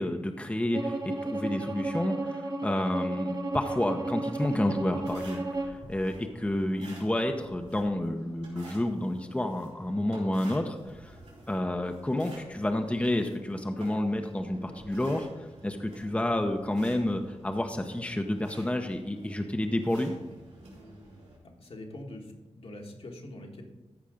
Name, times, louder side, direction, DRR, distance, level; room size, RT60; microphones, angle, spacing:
voice 1, 0.0-11.2 11.5-20.1, left 1 dB, 10° left, 4 dB, 0.8 m, -30 dB
Bowed string instrument, 0.7-5.8, right 2 dB, 40° right, 1.3 m, -33 dB
sound 1, 4.2-21.4, right 1 dB, 85° right, 3.9 m, -50 dB
voice 2, 21.6-23.6, left 1 dB, 60° left, 1 dB, 1.7 m, -43 dB
14.0 x 5.0 x 5.1 m, 1.1 s
cardioid pair, 70°, 11 cm